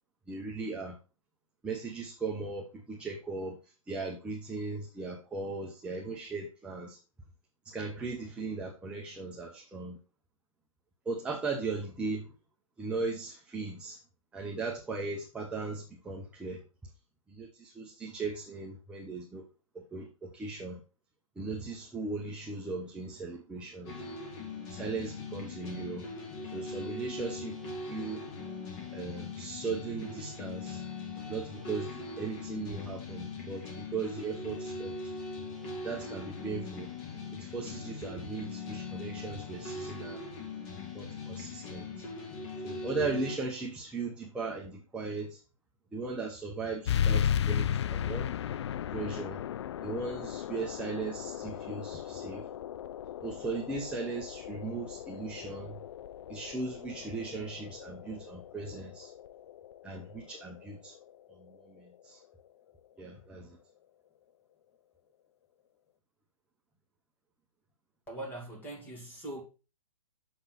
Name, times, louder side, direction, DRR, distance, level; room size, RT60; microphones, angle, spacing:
voice 1, 0.3-1.0 1.6-3.6 3.9-7.0 7.6-10.0 11.1-12.2 12.8-14.0 14.3-16.6 17.3-19.4 19.7-20.8 21.4-24.0 24.7-26.1 26.5-27.6 27.9-28.2 28.9-30.8 31.3-35.0 35.8-36.9 37.3-40.2 40.7-41.9 42.6-45.4 45.9-48.3 48.9-49.4 49.8-52.4 53.2-55.8 56.3-59.1 59.8-60.9 61.4-62.2 63.0-63.6, right 3 dB, 5° right, 0.8 m, -38 dB
sound 1, 23.9-43.4, left 3 dB, 30° left, 2.1 m, -41 dB
sound 2, 46.9-62.0, left 9 dB, 50° left, 0.4 m, -36 dB
voice 2, 68.1-69.4, right 1 dB, 10° left, 2.3 m, -41 dB
7.0 x 6.1 x 4.1 m
hypercardioid pair, 150°, 18 cm